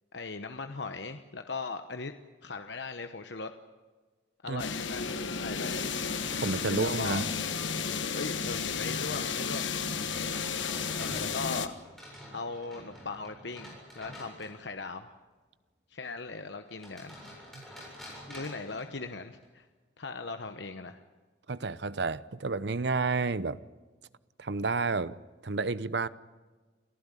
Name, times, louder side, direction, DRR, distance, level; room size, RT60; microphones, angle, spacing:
voice 1, 0.1-2.1 2.4-3.5 4.4-5.9 6.7-7.2 8.1-9.7 11.0-11.7 12.3-15.1 15.9-17.1 18.3-19.6 20.0-21.0, left 4 dB, 70° left, 1.0 m, -39 dB
sound 1, 4.6-11.7, left 5 dB, 85° left, 1.5 m, -33 dB
voice 2, 6.3-7.3 17.5-17.7 21.5-23.6 24.4-25.1 25.4-26.1, right 3 dB, 65° right, 0.8 m, -30 dB
sound 2, 9.8-14.8 16.7-19.4, equal, ahead, 7.6 m, -48 dB
28.5 x 15.0 x 9.9 m
head